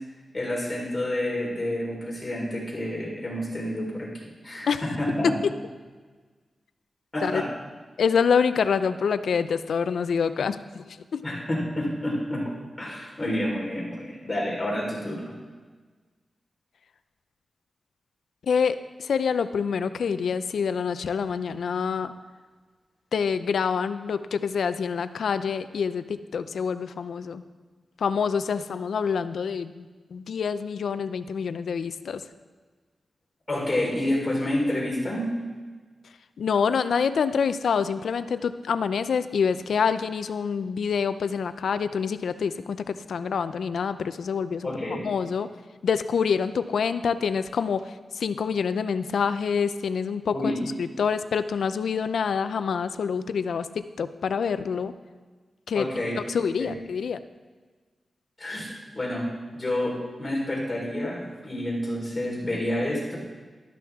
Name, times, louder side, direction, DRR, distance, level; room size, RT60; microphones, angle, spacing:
voice 1, 0.3-5.3 7.1-7.5 11.2-15.3 33.5-35.3 44.6-45.0 50.3-50.6 55.7-56.2 56.6-56.8 58.4-63.2, left 1 dB, 20° left, -5 dB, 4.2 m, -29 dB
voice 2, 8.0-11.2 18.4-22.1 23.1-27.4 28.0-29.9 30.1-32.2 36.4-44.7 45.0-45.5 45.8-50.5 50.8-54.9 55.7-55.9 56.3-57.2, left 6 dB, 85° left, 12 dB, 0.5 m, -26 dB
12.5 x 12.0 x 3.6 m, 1.4 s
wide cardioid pair, 110°, 0 cm